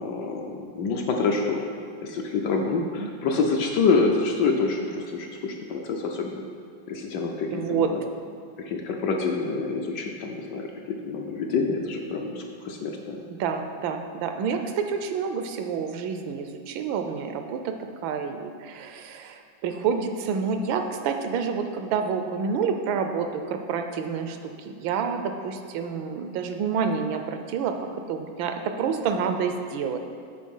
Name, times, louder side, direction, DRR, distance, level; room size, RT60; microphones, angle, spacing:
voice 1, 0.0-1.7 2.0-6.4 6.9-8.0 8.6-13.2, left 4 dB, 70° left, 2 dB, 1.1 m, -27 dB
voice 2, 7.5-7.9 13.4-30.0, right 6 dB, 80° right, 6 dB, 1.4 m, -28 dB
8.6 x 3.9 x 5.4 m, 2.3 s
omnidirectional pair, 2.2 m